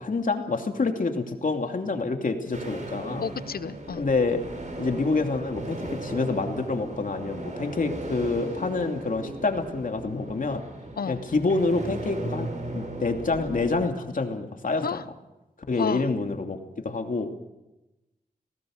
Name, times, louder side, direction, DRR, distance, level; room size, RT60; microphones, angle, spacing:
voice 1, 0.0-3.2 4.0-4.4 4.8-10.6 11.1-15.0 15.7-17.3, left 3 dB, 60° left, 4 dB, 2.8 m, -27 dB
sound 1, 2.5-13.9, right 2 dB, 50° right, 6.1 m, -37 dB
voice 2, 3.2-4.1 11.0-11.2 14.8-15.0 15.8-16.1, left 6 dB, 85° left, 15 dB, 0.9 m, -31 dB
28.0 x 18.5 x 6.6 m, 0.99 s
wide cardioid pair, 65°, 15 cm